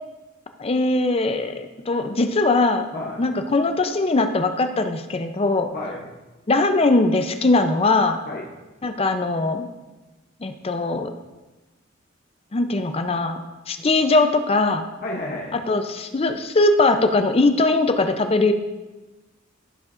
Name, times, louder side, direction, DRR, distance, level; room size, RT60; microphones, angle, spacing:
voice 1, 0.6-2.9 3.2-5.7 6.5-8.2 8.8-9.7 10.4-11.1 12.5-13.4 13.7-14.9 15.7-18.5, left 2 dB, 30° left, 7 dB, 0.5 m, -20 dB
voice 2, 5.7-6.1 8.3-8.5 13.8-13.9 15.0-15.5, left 2 dB, 45° left, -2 dB, 0.8 m, -31 dB
14.0 x 5.1 x 2.5 m, 1.1 s
head